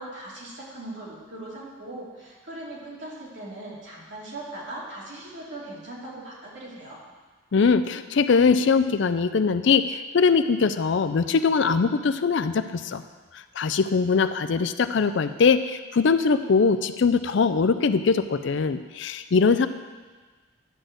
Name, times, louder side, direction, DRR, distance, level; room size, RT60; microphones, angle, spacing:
voice 1, 0.0-7.0, right 1 dB, 60° right, -6 dB, 3.0 m, -39 dB
voice 2, 7.5-13.0 13.3-19.7, left 5 dB, 65° left, 11 dB, 0.4 m, -22 dB
11.5 x 4.2 x 7.8 m, 1.4 s
head